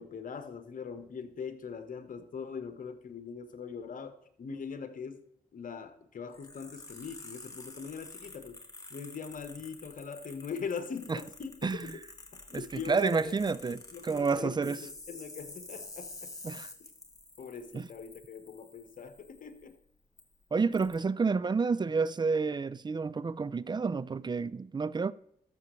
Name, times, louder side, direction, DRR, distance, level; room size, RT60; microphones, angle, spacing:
voice 1, 0.0-5.2 5.5-8.6 8.9-12.0 12.3-13.3 13.9-16.3 17.4-19.8, left 6 dB, 60° left, 1.3 m, -41 dB
sound 1, 6.3-19.7 20.2-20.3 20.7-20.9, left 2 dB, 20° left, 2.2 m, -49 dB
voice 2, 11.6-12.0 12.5-14.8 16.4-16.7 17.7-17.9 20.5-25.1, right 4 dB, 30° right, 0.5 m, -30 dB
13.5 x 7.0 x 3.2 m
supercardioid pair, 50°, 16 cm